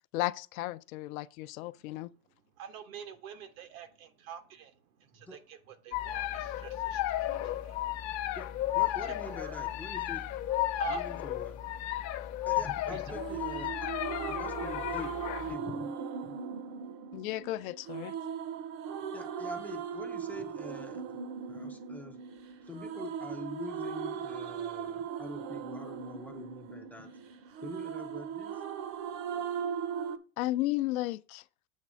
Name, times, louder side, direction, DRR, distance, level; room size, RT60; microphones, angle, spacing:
voice 1, 0.1-2.1 17.1-18.1 30.4-31.4, left 17 dB, 80° left, 0.6 m, -34 dB
voice 2, 2.6-4.7 5.0-7.8 9.3-9.7 10.7-11.1 12.9-13.0, right 9 dB, 85° right, 1.2 m, -45 dB
sound 1, 5.9-15.5, left 13 dB, 40° left, 0.7 m, -34 dB
voice 3, 8.7-10.3 10.9-11.6 12.5-13.9 14.3-15.9 16.2-16.4 19.1-21.2 21.5-22.2 22.7-27.1 27.6-28.6, left 2 dB, 5° left, 0.3 m, -45 dB
sound 2, 13.1-30.2, right 7 dB, 55° right, 0.7 m, -38 dB
7.3 x 3.3 x 6.1 m
supercardioid pair, 145°, 41 cm